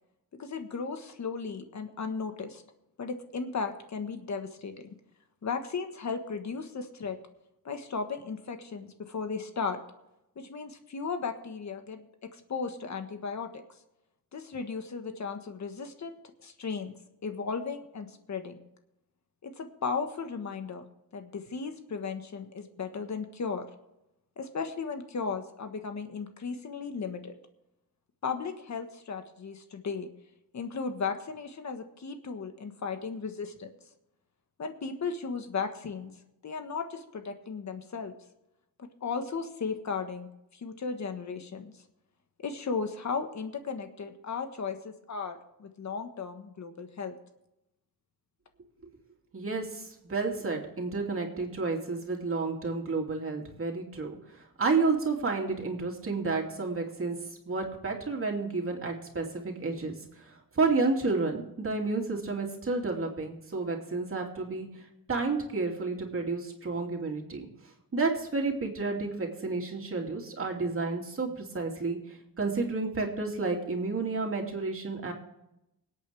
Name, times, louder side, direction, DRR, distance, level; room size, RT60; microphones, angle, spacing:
voice 1, 0.4-2.6 3.0-4.9 5.4-7.2 7.6-9.8 10.3-12.0 12.3-13.6 14.3-16.2 16.4-16.9 17.2-18.6 19.4-20.8 21.1-23.7 24.4-27.3 28.2-30.1 30.5-33.7 34.6-36.1 36.4-38.1 38.8-41.7 42.4-47.1, left 5 dB, 50° left, 6 dB, 1.5 m, -35 dB
voice 2, 49.3-57.2 57.4-67.5 67.9-75.1, right 3 dB, 40° right, 1 dB, 2.7 m, -31 dB
24.5 x 8.7 x 3.5 m, 0.86 s
wide cardioid pair, 135°, 35 cm